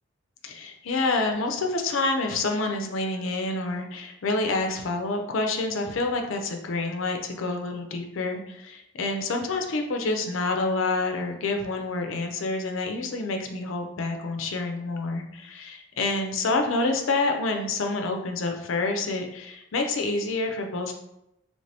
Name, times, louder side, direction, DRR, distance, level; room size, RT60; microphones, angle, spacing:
voice 1, 0.4-20.9, left 3 dB, 90° left, 4 dB, 0.5 m, -28 dB
3.3 x 3.1 x 2.6 m, 0.83 s
head